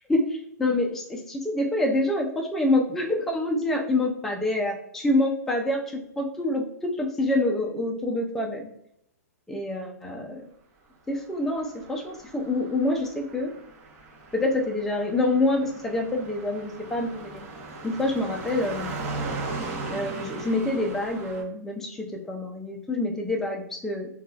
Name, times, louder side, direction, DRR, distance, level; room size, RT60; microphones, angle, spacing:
voice 1, 0.1-8.7 9.5-10.5 11.1-13.5 14.3-17.4 17.8-18.9 19.9-24.1, left 2 dB, 5° left, 0 dB, 0.3 m, -26 dB
Car passing by, 11.5-21.4, right 3 dB, 35° right, 0.7 m, -38 dB
2.9 x 2.2 x 2.3 m, 0.75 s
hypercardioid pair, 125°, 9 cm